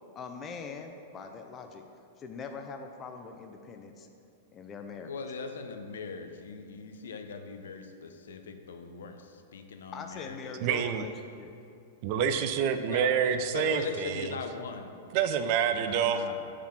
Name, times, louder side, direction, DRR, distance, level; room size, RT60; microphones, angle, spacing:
voice 1, 0.1-1.8 2.2-4.1 4.5-5.1 9.9-11.1 11.4-11.5, left 5 dB, 25° left, 5 dB, 0.5 m, -42 dB
voice 2, 5.0-10.9 12.8-14.9 15.6-16.5, left 5 dB, 70° left, 6 dB, 0.6 m, -40 dB
voice 3, 10.6-11.0 12.0-14.4 15.1-16.2, right 8 dB, 45° right, 8 dB, 0.4 m, -27 dB
5.0 x 4.9 x 5.8 m, 2.6 s
figure-of-eight pair, 100°, 0 cm